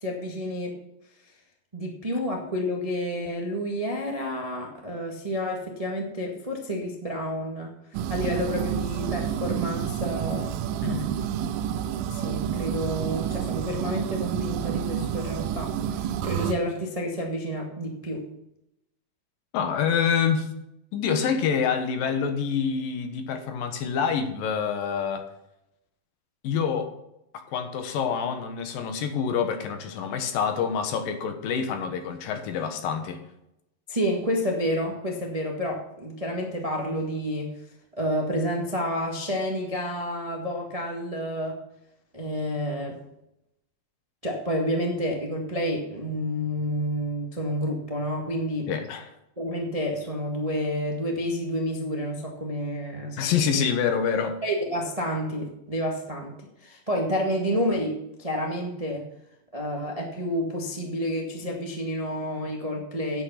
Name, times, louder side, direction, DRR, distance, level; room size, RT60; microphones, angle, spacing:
voice 1, 0.0-0.7 1.7-7.7 8.1-10.6 12.1-18.3 33.9-37.6 38.0-41.6 42.1-43.0 44.2-48.7 49.4-53.6 54.4-56.3 56.6-59.0 59.5-63.2, equal, 30° right, 0 dB, 0.6 m, -29 dB
sound 1, 7.9-16.5, right 9 dB, 80° right, 2.4 m, -29 dB
voice 2, 10.8-11.1 19.5-20.5 20.9-25.3 26.4-26.9 27.3-33.2 48.7-49.1 53.2-54.4, left 7 dB, 80° left, 7 dB, 2.9 m, -27 dB
9.7 x 8.6 x 5.7 m, 0.83 s
omnidirectional pair, 4.1 m